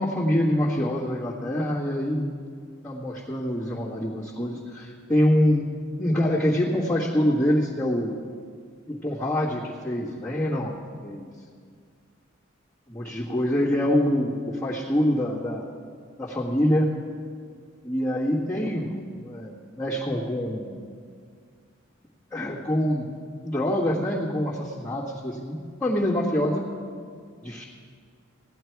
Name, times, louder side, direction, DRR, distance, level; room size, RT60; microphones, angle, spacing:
voice 1, 0.0-2.3 2.8-5.6 6.0-8.1 8.9-11.3 12.9-15.7 16.2-16.9 17.8-20.8 22.3-23.0 23.4-26.6 27.4-27.6, left 1 dB, 5° left, -11 dB, 1.5 m, -25 dB
16.5 x 10.5 x 4.6 m, 2.1 s
head